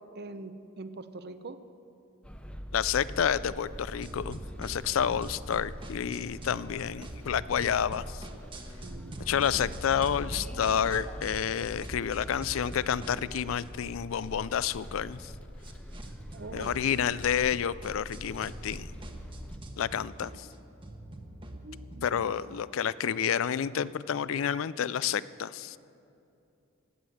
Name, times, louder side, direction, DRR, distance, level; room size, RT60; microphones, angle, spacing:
voice 1, 0.1-1.6 8.8-9.2 16.3-16.7 21.6-22.6, right 3 dB, 50° right, 11 dB, 0.7 m, -44 dB
sound 1, 2.2-19.6, equal, 5° left, 0.6 m, -44 dB
voice 2, 2.7-8.3 9.3-15.3 16.5-18.9 19.8-20.5 22.0-25.8, left 8 dB, 70° left, 18 dB, 0.4 m, -29 dB
sound 2, 4.0-6.7 7.0-11.5 11.8-22.0, right 1 dB, 25° right, 1.1 m, -45 dB
15.5 x 9.6 x 7.8 m, 2.7 s
head